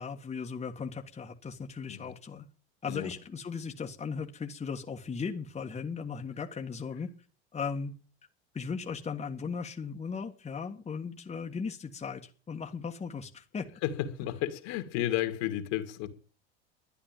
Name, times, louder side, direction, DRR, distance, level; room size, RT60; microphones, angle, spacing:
voice 1, 0.0-2.4 2.8-7.1 7.5-7.9 8.5-13.7, left 5 dB, 20° left, 1.6 m, -37 dB
voice 2, 13.8-16.1, left 13 dB, 65° left, 2.3 m, -32 dB
12.0 x 9.8 x 9.0 m
supercardioid pair, 100°, 32 cm